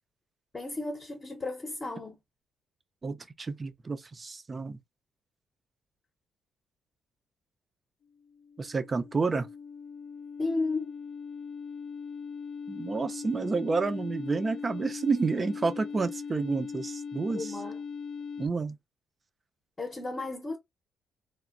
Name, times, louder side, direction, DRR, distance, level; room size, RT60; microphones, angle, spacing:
voice 1, 0.5-2.2 10.4-11.0 17.3-17.8 19.8-20.6, left 3 dB, 25° left, 0.8 m, -33 dB
voice 2, 3.0-4.8 8.6-9.5 12.7-17.5 18.4-18.8, right 4 dB, 30° right, 0.5 m, -30 dB
sound 1, 8.2-18.5, left 5 dB, 55° left, 0.3 m, -40 dB
3.1 x 2.1 x 2.4 m
cardioid pair, 90°, 0 cm